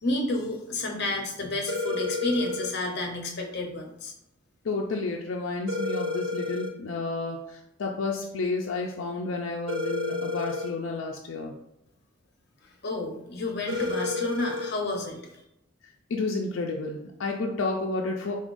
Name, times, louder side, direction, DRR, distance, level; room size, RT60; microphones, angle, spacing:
voice 1, 0.0-4.1 12.8-15.2, left 2 dB, 55° left, 1 dB, 0.8 m, -30 dB
sound 1, 1.7-2.7 5.7-6.7 9.7-10.7 13.7-14.7, left 3 dB, 80° right, 0.6 m, -30 dB
voice 2, 4.6-11.5 16.1-18.3, left 3 dB, 80° left, 0 dB, 0.4 m, -31 dB
3.9 x 3.6 x 2.5 m, 0.82 s
head